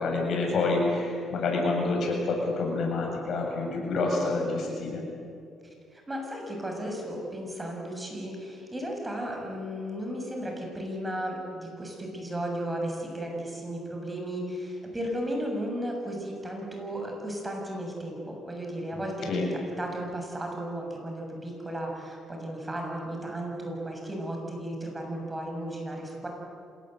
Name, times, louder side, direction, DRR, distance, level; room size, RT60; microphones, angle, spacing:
voice 1, 0.0-5.0 19.3-19.5, left 3 dB, 65° left, 0 dB, 7.7 m, -27 dB
voice 2, 5.6-19.5 19.8-26.3, right 1 dB, 15° right, 1 dB, 7.0 m, -35 dB
26.5 x 19.0 x 8.1 m, 2.4 s
cardioid pair, 90°, 0 cm